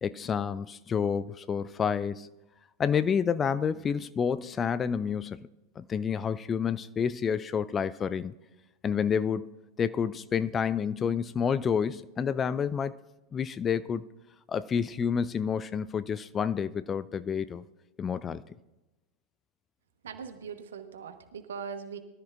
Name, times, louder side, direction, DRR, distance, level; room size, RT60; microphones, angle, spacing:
voice 1, 0.0-2.3 2.8-5.5 5.8-8.3 8.8-13.0 13.3-14.0 14.5-17.6 18.0-18.4, left 7 dB, 20° left, 0.3 m, -29 dB
voice 2, 20.0-22.0, right 6 dB, 65° right, 1.2 m, -40 dB
22.5 x 13.0 x 2.5 m
figure-of-eight pair, 90°, 0 cm